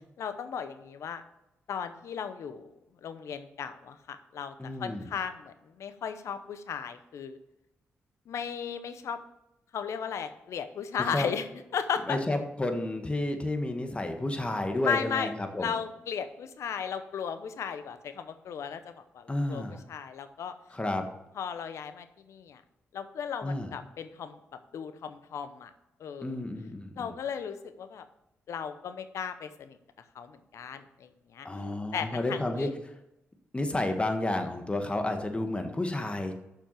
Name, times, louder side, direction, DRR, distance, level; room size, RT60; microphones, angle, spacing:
voice 1, 0.2-1.2 1.7-2.7 3.0-7.4 8.3-9.2 9.7-11.5 11.7-12.2 14.9-15.3 15.6-20.5 21.4-22.6 22.9-24.4 24.7-25.7 26.0-26.4 27.0-28.1 28.5-29.8 30.1-31.5 31.9-32.7, left 7 dB, 80° left, 11 dB, 0.8 m, -36 dB
voice 2, 4.6-5.1 11.1-11.3 12.1-15.7 19.3-19.8 20.7-21.0 23.4-23.7 26.2-27.1 31.4-32.7 33.5-36.3, left 2 dB, 25° left, 5 dB, 1.6 m, -31 dB
6.9 x 5.9 x 7.5 m, 0.88 s
cardioid pair, 60°, 5 cm